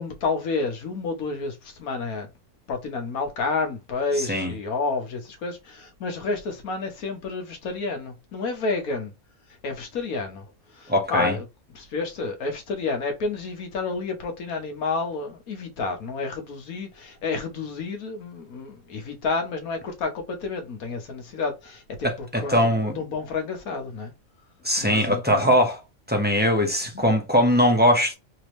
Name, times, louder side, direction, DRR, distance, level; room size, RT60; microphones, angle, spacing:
voice 1, 0.0-2.3 2.7-9.1 9.6-10.4 10.7-11.4 11.7-24.1 24.8-25.5, left 4 dB, 80° left, 1.5 m, -30 dB
voice 2, 4.2-4.5 10.9-11.3 22.0-23.0 24.6-25.8 26.1-28.1, equal, 10° right, 0.8 m, -21 dB
3.5 x 3.3 x 3.0 m
omnidirectional pair, 1.5 m